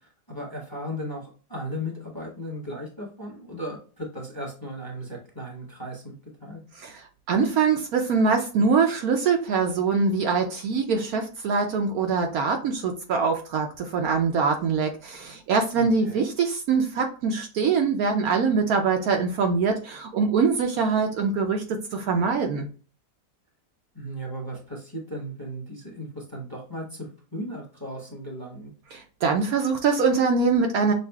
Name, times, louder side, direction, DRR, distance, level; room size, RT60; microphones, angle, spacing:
voice 1, 0.3-6.1 6.4-6.6 15.8-16.3 23.9-28.7, equal, 15° left, -2 dB, 1.0 m, -36 dB
voice 2, 6.8-22.7 28.9-30.9, right 5 dB, 70° right, 3 dB, 1.0 m, -23 dB
6.3 x 2.4 x 2.3 m, 0.37 s
omnidirectional pair, 1.8 m